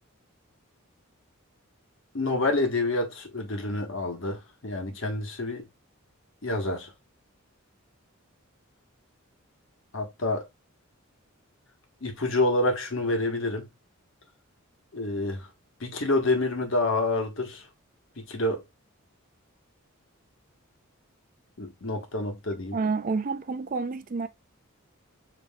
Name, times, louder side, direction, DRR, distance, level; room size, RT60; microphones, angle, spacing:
voice 1, 2.1-5.7 6.4-6.9 9.9-10.4 12.0-13.7 14.9-15.5 15.8-17.6 18.2-18.6 21.6-22.8, left 2 dB, 60° left, 1.2 m, -28 dB
voice 2, 22.7-24.3, right 4 dB, 40° right, 0.4 m, -29 dB
7.3 x 3.0 x 2.2 m
head